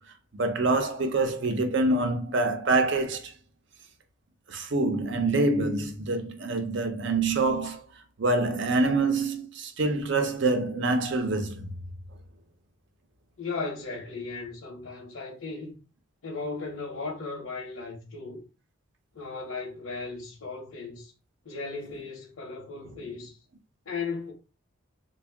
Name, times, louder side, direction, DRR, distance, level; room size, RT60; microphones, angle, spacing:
voice 1, 0.3-3.3 4.5-7.8 8.2-11.7, right 2 dB, 60° right, 0.6 m, -26 dB
voice 2, 13.4-15.8 16.2-18.4 19.1-21.1 21.4-23.4 23.9-24.3, left 4 dB, 70° left, 0.9 m, -36 dB
3.4 x 2.3 x 3.4 m
head